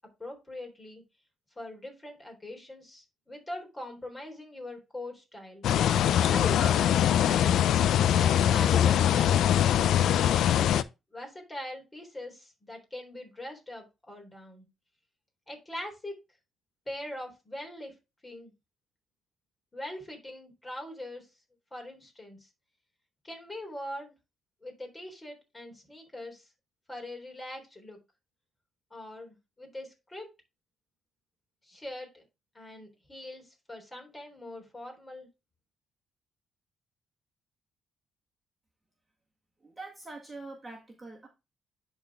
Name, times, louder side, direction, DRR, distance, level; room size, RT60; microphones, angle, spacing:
voice 1, 0.2-1.0 1.6-5.7 6.2-7.4 8.0-9.4 10.0-10.5 11.1-14.7 15.5-16.2 16.9-17.9 18.2-18.5 19.7-21.3 21.7-22.5 23.2-24.1 24.6-26.5 26.9-28.0 28.9-30.3 31.6-32.2 32.5-35.3, left 1 dB, 20° left, 3.7 m, -42 dB
sound 1, 5.6-10.8, left 10 dB, 75° left, 0.4 m, -23 dB
voice 2, 39.6-41.3, right 3 dB, 20° right, 1.7 m, -44 dB
10.5 x 4.2 x 3.5 m
cardioid pair, 90°, 0 cm